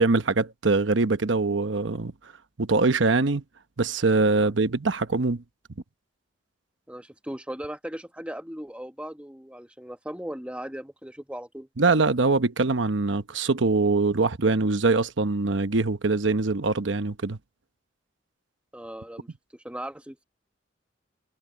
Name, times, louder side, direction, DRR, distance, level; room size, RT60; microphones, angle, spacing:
voice 1, 0.0-2.1 2.6-3.4 3.8-5.4 11.8-17.4, right 3 dB, 80° right, 0.9 m, -23 dB
voice 2, 6.9-11.7 18.7-20.2, right 1 dB, 5° right, 1.3 m, -38 dB
head